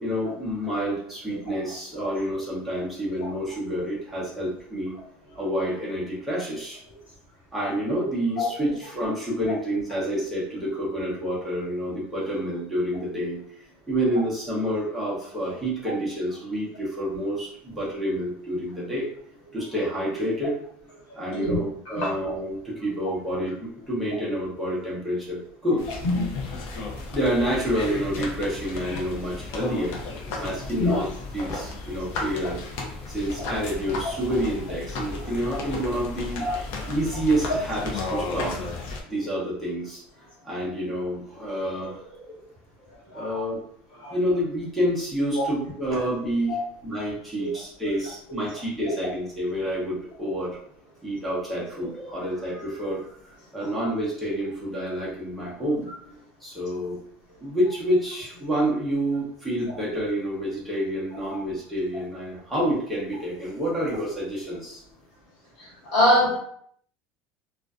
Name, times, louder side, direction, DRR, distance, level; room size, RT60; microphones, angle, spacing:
voice 1, 0.0-5.0 5.3-6.8 7.5-13.4 13.9-19.1 19.5-20.6 21.2-25.8 27.1-30.0 30.4-31.1 31.3-32.6 33.1-36.5 36.9-38.6 39.1-40.0 40.4-42.4 43.1-43.6 44.1-50.6 51.0-53.1 53.5-55.9 56.4-57.0 57.4-64.8, equal, ahead, -7 dB, 0.7 m, -28 dB
sound 1, 25.8-39.0, left 3 dB, 50° left, 0.5 m, -34 dB
voice 2, 65.6-66.4, left 1 dB, 75° left, -6 dB, 1.2 m, -23 dB
2.5 x 2.1 x 2.3 m, 0.66 s
cardioid pair, 170°, 5 cm